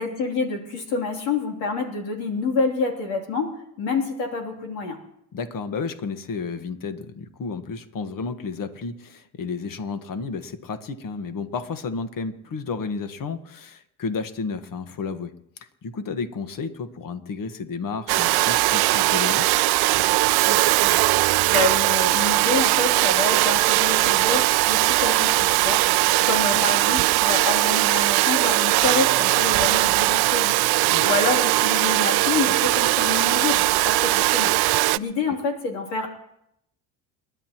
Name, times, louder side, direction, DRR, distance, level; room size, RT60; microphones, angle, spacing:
voice 1, 0.0-5.0 20.4-36.1, left 4 dB, 85° left, 2 dB, 3.3 m, -28 dB
voice 2, 5.3-19.5 26.5-26.7 30.8-31.1, left 4 dB, 40° left, 10 dB, 1.5 m, -32 dB
Domestic sounds home sounds, 18.1-35.0, right 19 dB, 50° right, 0.5 m, -20 dB
29.0 x 11.5 x 3.0 m, 0.79 s
supercardioid pair, 75°, 49 cm